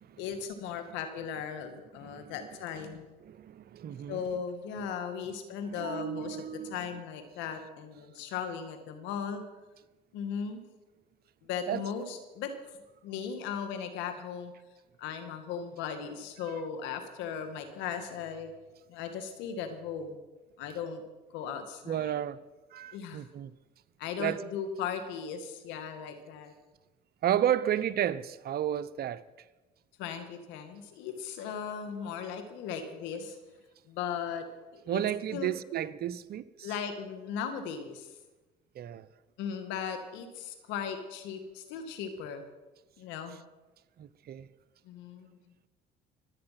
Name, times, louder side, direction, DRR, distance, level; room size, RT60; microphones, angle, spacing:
voice 1, 0.2-3.1 4.1-9.4 10.1-10.6 11.4-12.5 13.0-14.5 15.0-18.5 18.9-20.2 20.6-21.0 21.3-22.2 22.9-23.2 24.0-26.5 30.0-33.4 33.9-34.5 34.7-35.0 35.3-35.5 36.6-38.1 39.4-42.5 43.0-43.4 44.8-45.3, left 7 dB, 85° left, 2.0 m, -37 dB
voice 2, 2.0-2.3 3.2-4.2 5.3-5.4 5.7-6.8 11.7-11.8 21.9-22.4 22.7-23.5 24.2-24.4 27.2-29.2 34.9-36.7 38.7-39.1 44.0-44.5, right 10 dB, 60° right, 0.8 m, -32 dB
23.5 x 8.9 x 5.9 m
supercardioid pair, 80°, 18 cm